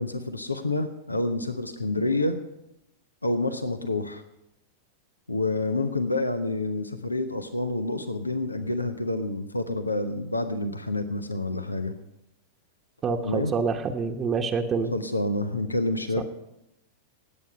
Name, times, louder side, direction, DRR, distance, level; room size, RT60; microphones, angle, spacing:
voice 1, 0.0-2.4 3.2-4.2 5.3-11.9 13.2-13.5 14.9-16.2, left 2 dB, 90° left, 10 dB, 0.9 m, -28 dB
voice 2, 13.0-14.9 16.2-16.3, right 5 dB, 25° right, 3 dB, 1.0 m, -27 dB
18.0 x 8.7 x 5.6 m, 0.87 s
figure-of-eight pair, 95°, 0 cm